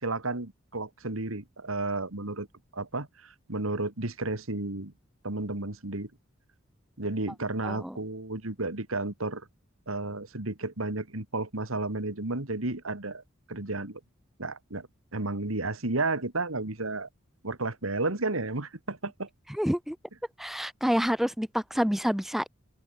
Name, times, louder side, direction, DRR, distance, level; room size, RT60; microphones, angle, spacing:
voice 1, 0.0-2.5 2.7-4.9 5.2-6.1 7.0-9.5 9.9-13.2 13.5-14.0 14.4-14.9 15.1-17.1 17.4-19.3, right 2 dB, 85° right, 2.5 m, -32 dB
voice 2, 7.6-8.0 19.6-20.0 20.4-22.5, equal, ahead, 0.4 m, -28 dB
open air
head